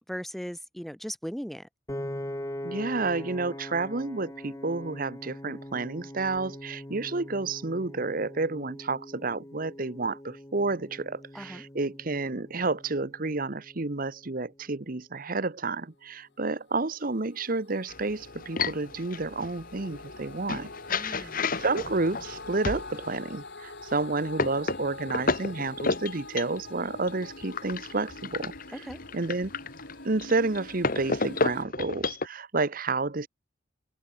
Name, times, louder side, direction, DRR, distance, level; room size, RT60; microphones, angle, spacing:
voice 1, 0.0-1.7 11.3-11.6 20.9-21.4 28.9-29.0, equal, ahead, 1.8 m, -38 dB
Piano, 1.9-14.1, left 1 dB, 15° left, 1.7 m, -42 dB
voice 2, 2.6-21.3 21.6-28.8 29.1-29.5 30.0-33.3, right 3 dB, 50° right, 1.1 m, -30 dB
sound 1, 16.5-31.6, left 3 dB, 65° left, 4.2 m, -45 dB
sound 2, 17.9-23.2 23.8-32.3, left 3 dB, 50° left, 2.0 m, -33 dB
head